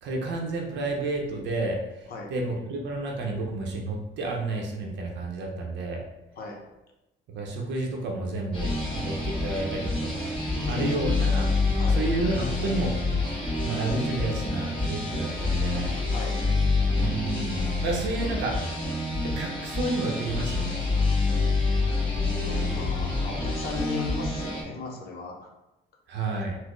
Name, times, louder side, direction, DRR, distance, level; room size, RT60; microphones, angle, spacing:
voice 1, 0.0-6.0 7.3-11.5 11.9-12.9 13.6-15.9 17.0-18.8 19.2-20.8 26.1-26.6, right 2 dB, 70° right, 0 dB, 0.6 m, -31 dB
sound 1, 8.5-24.6, left 3 dB, 25° left, 1.1 m, -27 dB
voice 2, 10.5-11.2 11.7-12.0 16.1-16.4 22.0-25.5, left 4 dB, 55° left, 0 dB, 0.7 m, -35 dB
4.1 x 2.0 x 3.0 m, 0.97 s
cardioid pair, 135°, 19 cm